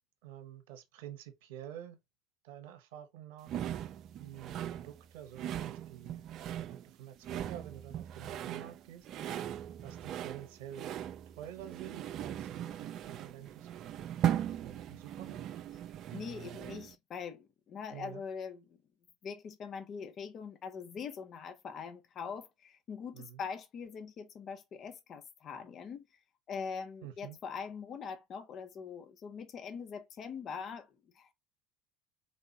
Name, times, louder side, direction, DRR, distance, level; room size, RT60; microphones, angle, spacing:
voice 1, 0.2-2.0 2.4-3.6 4.2-6.2 6.6-9.1 9.8-10.9 11.4-13.7 13.9-14.1 14.6-15.5 17.9-18.2 23.1-23.4 27.0-27.4, right 11 dB, 70° right, 1.0 m, -48 dB
sound 1, 3.5-16.9, right 10 dB, 50° right, 0.4 m, -39 dB
voice 2, 16.1-18.8 19.2-26.1 26.5-31.3, left 6 dB, 45° left, 0.7 m, -43 dB
4.4 x 2.8 x 2.8 m
hypercardioid pair, 70°, 0 cm